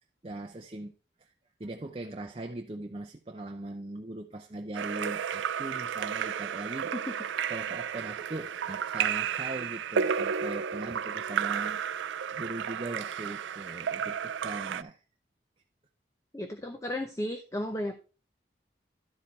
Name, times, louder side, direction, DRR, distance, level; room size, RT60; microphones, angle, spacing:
voice 1, 0.2-0.9 1.2-1.3 1.6-6.9 7.5-11.8 12.3-15.0, right 2 dB, 30° right, 0.6 m, -40 dB
Splash splatter / Drip / Trickle dribble, 4.7-14.8, right 7 dB, 90° right, 0.4 m, -32 dB
voice 2, 16.3-18.0, left 1 dB, 15° left, 0.7 m, -34 dB
12.0 x 5.0 x 4.1 m
head